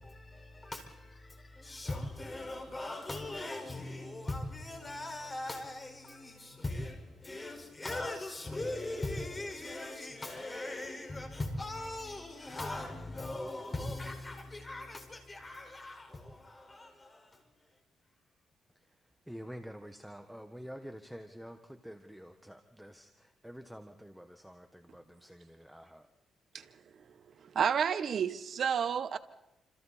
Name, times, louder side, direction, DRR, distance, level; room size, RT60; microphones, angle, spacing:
voice 1, 0.0-17.5, left 2 dB, 20° left, 5.0 m, -40 dB
voice 2, 19.3-26.0, equal, ahead, 1.3 m, -48 dB
voice 3, 27.5-29.2, right 7 dB, 55° right, 1.0 m, -30 dB
28.5 x 27.0 x 4.2 m
cardioid pair, 90°, 0 cm